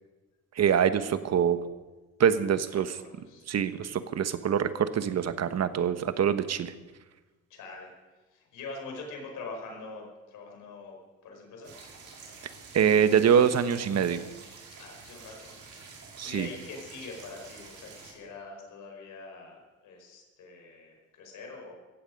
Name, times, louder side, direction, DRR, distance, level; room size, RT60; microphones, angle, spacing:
voice 1, 0.6-1.6 2.2-2.9 3.5-6.7 12.7-14.2 16.2-16.5, right 8 dB, 60° right, 11 dB, 1.2 m, -24 dB
voice 2, 2.7-3.4 7.5-7.9 8.3-11.0 11.2-11.7 14.8-15.5 16.0-21.7, left 3 dB, 85° left, 1 dB, 5.1 m, -44 dB
sound 1, 11.6-18.1, right 4 dB, 75° right, 4.8 m, -48 dB
16.0 x 16.0 x 5.3 m, 1.2 s
cardioid pair, 90°, 30 cm